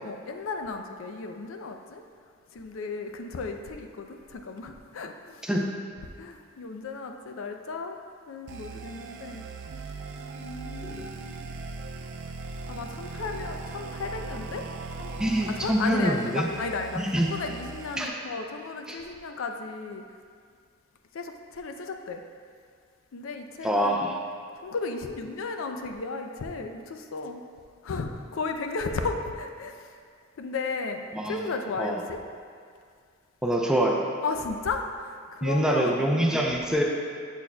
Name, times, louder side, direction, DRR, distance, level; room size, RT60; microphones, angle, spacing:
voice 1, 0.0-2.0 2.5-5.4 6.2-8.0 8.3-9.5 10.4-11.4 12.7-14.7 15.0-20.0 21.1-22.2 23.1-24.1 24.6-27.4 27.8-29.9 30.4-32.2 34.2-36.0, left 4 dB, 80° left, 5 dB, 0.4 m, -34 dB
sound 1, 8.5-18.1, right 4 dB, 60° right, 0.4 m, -39 dB
voice 2, 15.2-16.5 17.0-17.3 18.0-18.1 18.9-19.0 23.6-24.1 31.1-31.4 31.8-32.0 33.4-34.0 35.4-36.8, right 1 dB, 5° right, -2 dB, 0.5 m, -25 dB
7.1 x 6.3 x 2.2 m, 2.1 s
head